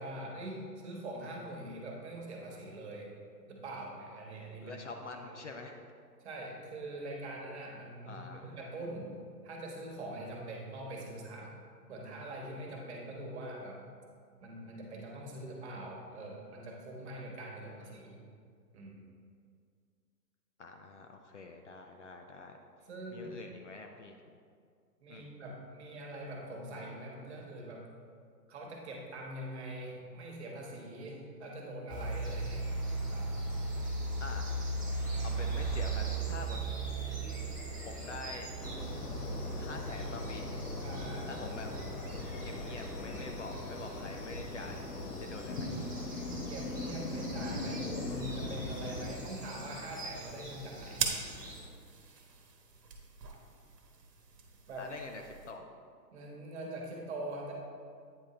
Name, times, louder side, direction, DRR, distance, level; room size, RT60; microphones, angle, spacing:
voice 1, 0.0-3.1 3.5-4.8 5.3-5.4 6.2-9.1 9.4-11.5 11.9-13.8 14.4-18.2 18.7-19.0 22.9-23.4 25.0-27.9 28.5-32.6 33.1-33.4 40.8-41.3 43.5-43.6 46.5-51.1 54.7-54.9 56.1-57.5, right 1 dB, 40° right, -1 dB, 1.4 m, -43 dB
voice 2, 4.6-5.8 8.0-8.5 17.5-18.0 20.6-22.6 23.1-24.2 25.1-25.3 34.2-34.6 35.2-36.6 37.8-38.5 39.6-40.6 41.2-41.7 42.4-44.8 45.2-45.8 54.8-55.7, left 3 dB, 45° left, 4 dB, 0.5 m, -46 dB
sound 1, 31.9-51.6, right 2 dB, 15° right, 0.5 m, -39 dB
sound 2, 38.6-49.1, left 2 dB, 65° left, 1.1 m, -40 dB
sound 3, 48.7-55.5, right 5 dB, 75° right, 1.2 m, -42 dB
8.9 x 3.6 x 4.2 m, 2.2 s
hypercardioid pair, 145°, 50 cm